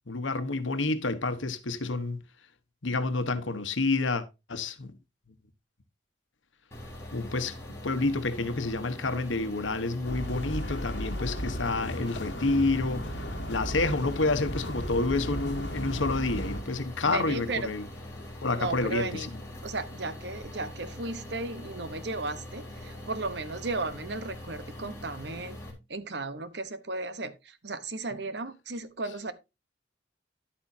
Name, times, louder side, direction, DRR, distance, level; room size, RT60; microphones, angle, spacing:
voice 1, 0.1-2.2 2.8-5.0 7.1-13.2 13.5-17.9 18.4-19.3, left 3 dB, 85° left, 1.2 m, -29 dB
sound 1, 6.7-25.7, left 1 dB, 15° left, 3.3 m, -43 dB
sound 2, 10.0-16.6, equal, 65° left, 1.8 m, -35 dB
voice 2, 17.0-17.7 18.6-19.3 19.6-25.6 25.9-29.3, right 3 dB, 60° right, 1.0 m, -35 dB
11.0 x 8.7 x 2.7 m
head